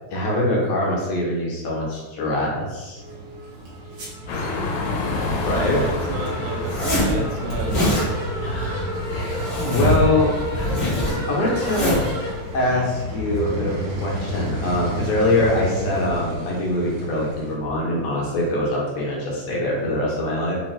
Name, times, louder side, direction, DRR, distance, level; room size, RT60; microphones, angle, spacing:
voice 1, 0.1-3.0 5.4-5.9 8.4-12.0 12.5-20.6, left 1 dB, 70° left, -4 dB, 1.8 m, -24 dB
sound 1, 3.0-17.5, equal, 60° right, 2.0 m, -31 dB
sound 2, 4.3-10.9, left 2 dB, 90° left, 2.0 m, -29 dB
voice 2, 5.6-6.7 7.0-8.1, right 3 dB, 85° right, -1 dB, 2.1 m, -30 dB
Zipper (clothing), 6.6-7.1 7.5-8.1 8.9-10.1 10.3-12.1, left 1 dB, 45° left, 1.0 m, -24 dB
4.9 x 2.2 x 3.1 m, 1.2 s
omnidirectional pair, 3.3 m